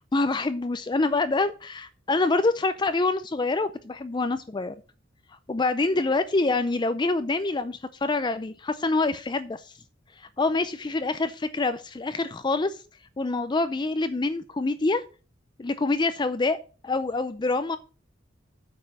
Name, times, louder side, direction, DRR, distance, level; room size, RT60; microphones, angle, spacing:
voice 1, 0.1-4.7 5.5-9.7 10.2-12.8 13.2-15.0 15.6-16.6 16.8-17.8, left 3 dB, 25° left, 11 dB, 0.4 m, -26 dB
8.6 x 5.4 x 7.2 m, 0.36 s
head